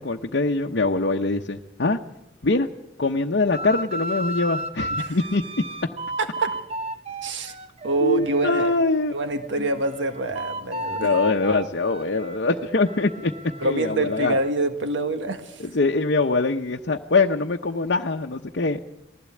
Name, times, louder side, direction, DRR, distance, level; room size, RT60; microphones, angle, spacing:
voice 1, 0.0-2.0 2.4-2.7 3.0-5.4 8.0-9.1 9.6-9.7 11.0-13.3 13.6-14.4 15.6-18.8, left 3 dB, 65° left, 2 dB, 0.9 m, -23 dB
sound 1, 3.5-8.8 9.2-14.5, right 1 dB, 35° right, 1.2 m, -34 dB
voice 2, 6.2-6.6 7.2-7.5 7.8-8.7 9.1-11.1 13.6-15.7, right 2 dB, 80° right, 7 dB, 1.6 m, -26 dB
20.0 x 15.5 x 8.5 m, 0.90 s
head